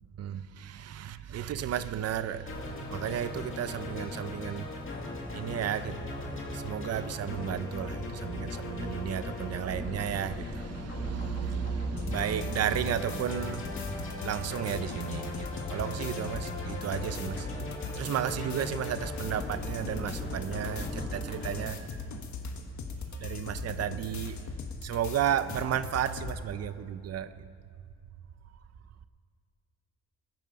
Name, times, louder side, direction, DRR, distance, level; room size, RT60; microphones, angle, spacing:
voice 1, 0.0-2.5 2.9-4.7 5.3-6.0 6.5-13.6 14.2-17.5 18.0-21.9 23.2-24.4 24.8-27.3, right 9 dB, 60° right, 13 dB, 0.6 m, -33 dB
sound 1, 2.5-21.7, left 2 dB, 45° left, 2.3 m, -38 dB
sound 2, 12.0-26.4, left 3 dB, 75° left, 1.4 m, -39 dB
20.5 x 9.1 x 5.2 m, 2.2 s
wide cardioid pair, 165°, 29 cm